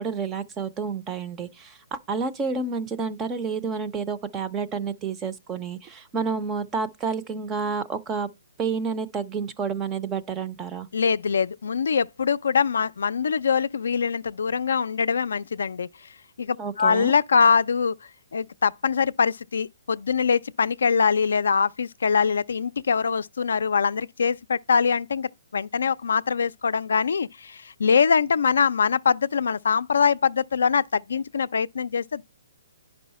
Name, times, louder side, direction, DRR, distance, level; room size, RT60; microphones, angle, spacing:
voice 1, 0.0-8.3 8.6-10.9 16.6-17.1, right 5 dB, 10° right, 0.4 m, -29 dB
voice 2, 10.9-15.9 16.4-18.0 18.3-32.2, left 6 dB, 75° left, 0.4 m, -23 dB
10.0 x 5.4 x 4.1 m
hypercardioid pair, 175°, 0 cm